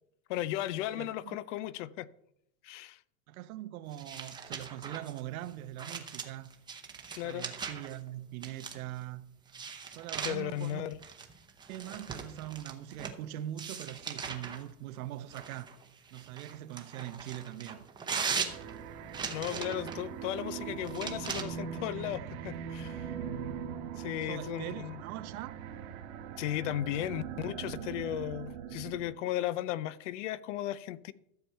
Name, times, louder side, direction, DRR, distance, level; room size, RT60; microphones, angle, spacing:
voice 1, 0.3-2.1 2.6-3.0 7.1-7.5 10.2-11.0 19.3-23.0 24.0-25.0 26.4-31.1, left 13 dB, 55° left, 0.6 m, -35 dB
voice 2, 0.9-1.4 3.3-6.5 7.2-9.3 9.8-10.9 11.7-15.7 16.1-17.8 24.3-25.6, right 13 dB, 70° right, 0.9 m, -42 dB
sound 1, 3.9-8.0 8.4-9.0 9.5-13.2 13.6-14.6 15.3-20.0 20.8-21.4, right 6 dB, 10° right, 0.8 m, -40 dB
sound 2, 18.3-29.1, right 8 dB, 50° right, 1.2 m, -41 dB
13.0 x 7.0 x 4.5 m
supercardioid pair, 150°, 45 cm